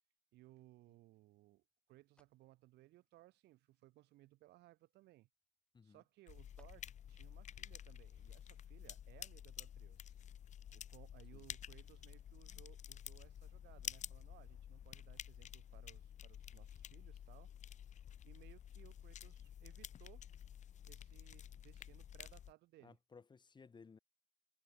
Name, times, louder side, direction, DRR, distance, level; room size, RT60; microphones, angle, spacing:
voice 1, 0.3-5.3 5.8-10.2 10.7-17.5 18.2-20.3 20.8-23.0, right 17 dB, 85° right, 4.4 m, -64 dB
sound 1, 0.8-7.2, left 1 dB, 5° left, 6.8 m, -81 dB
sound 2, 6.3-22.5, left 9 dB, 45° left, 0.8 m, -51 dB
voice 2, 22.8-24.0, left 5 dB, 25° left, 1.6 m, -60 dB
cardioid pair, 110°, 17 cm